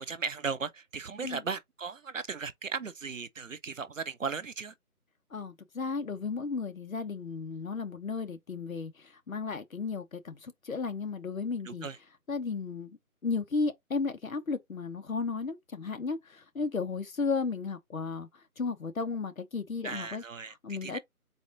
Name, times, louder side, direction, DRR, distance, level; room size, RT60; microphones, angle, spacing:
voice 1, 0.0-4.7 11.7-12.0 19.8-21.0, right 5 dB, 60° right, 0.6 m, -37 dB
voice 2, 5.3-11.9 12.3-18.3 18.6-20.2 20.6-21.0, left 4 dB, 65° left, 1.0 m, -34 dB
4.1 x 2.6 x 3.8 m
figure-of-eight pair, 180°, 45 cm